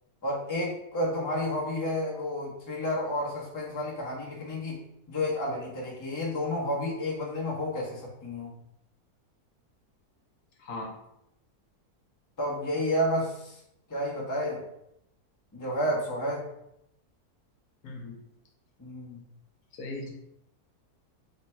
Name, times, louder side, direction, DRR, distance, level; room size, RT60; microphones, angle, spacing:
voice 1, 0.2-4.8 5.1-8.5 12.4-13.6 13.9-14.6 15.5-16.5 18.8-19.2, left 1 dB, 20° left, -4 dB, 0.5 m, -31 dB
voice 2, 10.6-10.9 17.8-18.2 19.7-20.1, left 2 dB, 70° left, 1 dB, 1.1 m, -38 dB
3.2 x 2.2 x 4.2 m, 0.80 s
omnidirectional pair, 1.6 m